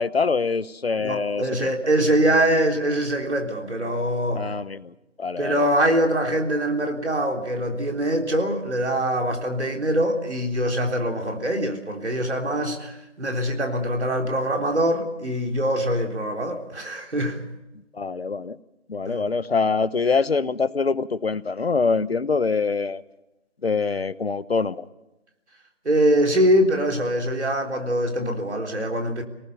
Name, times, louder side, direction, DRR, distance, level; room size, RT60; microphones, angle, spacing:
voice 1, 0.0-1.7 4.3-5.7 17.9-18.6 18.9-23.0 23.6-24.9, left 4 dB, 55° left, 16 dB, 1.0 m, -24 dB
voice 2, 1.0-4.5 5.4-17.4 19.1-19.2 25.9-29.2, right 1 dB, 65° right, 2 dB, 3.9 m, -23 dB
24.0 x 19.0 x 6.9 m, 0.97 s
figure-of-eight pair, 165°, 36 cm